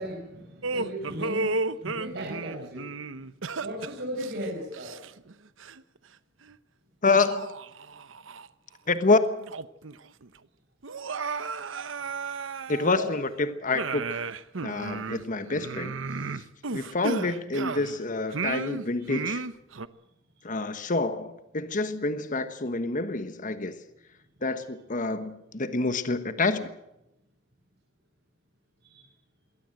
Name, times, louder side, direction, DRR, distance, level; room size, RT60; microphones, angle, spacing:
voice 1, 0.0-2.9 3.6-4.9 12.9-13.1 28.8-29.1, equal, 55° right, -1 dB, 5.2 m, -36 dB
sound 1, 0.6-5.3 5.6-5.8 6.5-6.6 7.2-8.5 8.9-9.0 9.4-10.0 10.2-10.3 10.8-13.3 13.7-18.0 18.3-19.9, right 4 dB, 75° right, 0.9 m, -33 dB
voice 2, 7.0-7.5 8.9-9.2 12.7-14.2 14.6-15.9 16.3-16.4 16.7-19.4 20.4-23.8 24.4-26.7, left 3 dB, 40° left, 11 dB, 1.3 m, -27 dB
22.5 x 17.5 x 7.8 m, 0.86 s
head